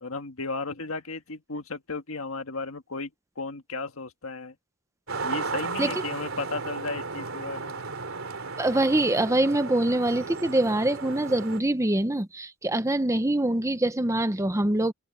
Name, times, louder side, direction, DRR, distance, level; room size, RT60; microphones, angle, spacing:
voice 1, 0.0-3.1 3.4-4.5 5.2-7.8, left 3 dB, 75° left, 1.8 m, -34 dB
sound 1, 5.1-11.6, right 4 dB, 70° right, 3.6 m, -34 dB
voice 2, 8.6-14.9, right 1 dB, 15° right, 0.8 m, -24 dB
open air
head